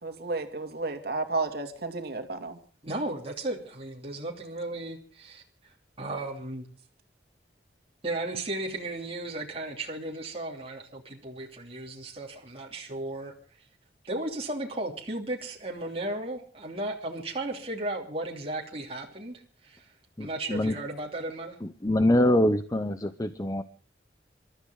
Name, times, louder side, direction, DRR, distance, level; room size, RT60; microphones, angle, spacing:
voice 1, 0.0-2.6, right 3 dB, 60° right, 6 dB, 2.7 m, -32 dB
voice 2, 2.8-6.7 8.0-13.7 14.1-19.9 20.2-21.6, right 2 dB, 35° right, -1 dB, 3.0 m, -35 dB
voice 3, 20.2-20.8 21.6-23.6, left 1 dB, 20° left, 11 dB, 0.8 m, -24 dB
28.0 x 13.5 x 3.9 m, 0.39 s
head